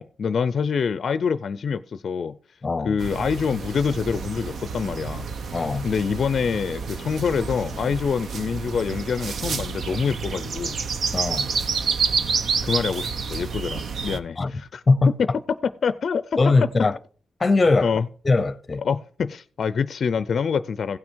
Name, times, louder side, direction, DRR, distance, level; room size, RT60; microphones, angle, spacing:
voice 1, 0.0-2.4 2.8-5.3 5.8-10.8 12.6-14.8 15.2-15.3 15.8-16.4 17.8-18.1 18.8-21.0, left 6 dB, 55° left, 0.4 m, -26 dB
voice 2, 2.6-3.0 5.5-5.9 11.1-11.5 14.1-14.5 14.9-15.1 16.4-17.0 17.4-17.9 18.2-18.8, left 3 dB, 25° left, 0.7 m, -20 dB
sound 1, 3.0-14.2, right 5 dB, 60° right, 0.8 m, -29 dB
16.0 x 6.1 x 4.5 m
wide cardioid pair, 145°, 0 cm